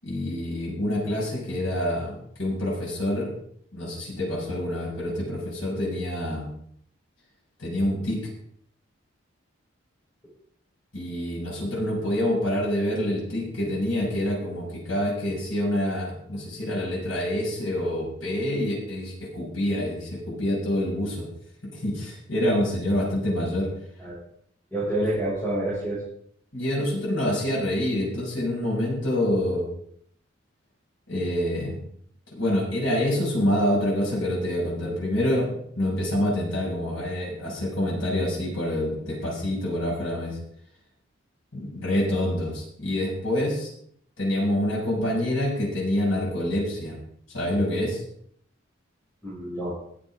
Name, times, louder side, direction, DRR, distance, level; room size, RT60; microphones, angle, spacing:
voice 1, 0.0-3.3 3.7-6.5 7.6-8.3 10.9-21.3 21.7-23.7 26.5-29.7 31.1-31.8 32.3-40.4 41.5-43.7 44.2-46.9 47.3-48.0, left 1 dB, 85° left, -3 dB, 6.1 m, -26 dB
voice 2, 24.7-26.1 49.2-49.7, right 1 dB, 5° left, -9 dB, 6.0 m, -28 dB
22.0 x 7.9 x 3.7 m, 0.68 s
head